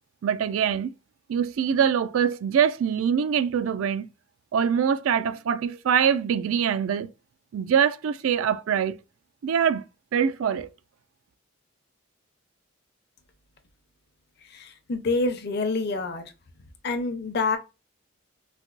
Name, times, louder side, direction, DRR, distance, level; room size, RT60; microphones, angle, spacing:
voice 1, 0.2-0.9 1.3-4.1 4.5-7.1 7.5-8.9 9.4-9.9 10.1-10.7, right 8 dB, 85° right, 0.3 m, -24 dB
voice 2, 14.5-16.2 16.8-17.6, left 3 dB, 55° left, 0.6 m, -27 dB
4.1 x 2.2 x 2.4 m
head